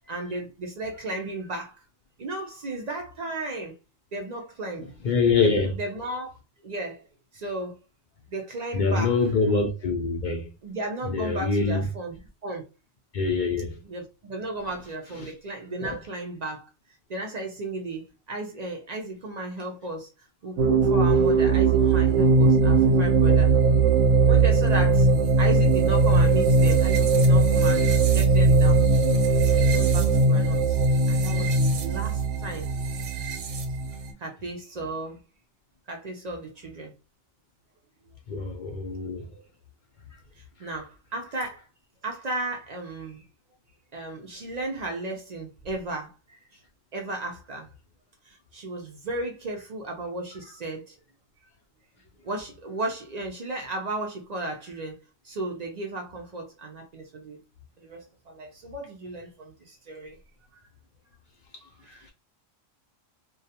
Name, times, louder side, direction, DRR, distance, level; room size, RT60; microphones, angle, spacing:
voice 1, 0.1-1.8 2.2-3.8 4.1-4.9 5.4-6.3 6.6-7.1 7.3-7.8 8.3-9.2 10.6-12.7 13.8-16.7 17.1-23.5 24.2-25.1 25.4-27.9 28.1-28.8 29.6-30.8 31.1-32.7 34.2-35.2 35.9-36.9 40.3-41.7 42.0-43.2 43.9-46.6 46.9-47.7 48.2-51.0 52.2-57.4 57.8-60.2 61.8-62.1, right 2 dB, 65° right, 0.4 m, -35 dB
voice 2, 5.0-5.7 8.7-10.5 11.1-11.8 13.1-13.8 15.2-15.3 15.8-15.9 38.3-39.3, left 4 dB, 80° left, 0.4 m, -24 dB
sound 1, 20.6-34.1, right 3 dB, 90° right, 1.0 m, -20 dB
2.3 x 2.2 x 2.7 m
omnidirectional pair, 1.4 m